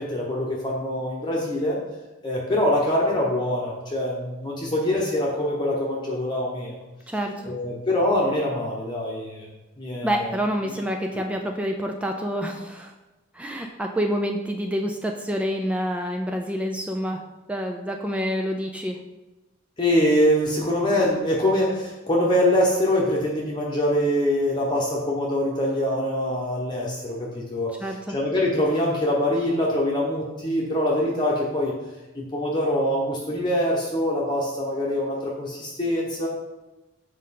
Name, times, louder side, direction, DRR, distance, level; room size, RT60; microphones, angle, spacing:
voice 1, 0.0-1.8 2.2-6.7 7.4-9.5 9.8-10.3 19.8-31.7 32.1-36.3, left 1 dB, 20° left, -3 dB, 0.9 m, -24 dB
voice 2, 7.1-7.5 10.0-12.9 13.3-17.2 17.5-19.0 27.8-28.2, equal, 5° right, 2 dB, 0.4 m, -27 dB
7.4 x 5.0 x 4.2 m, 1.1 s
head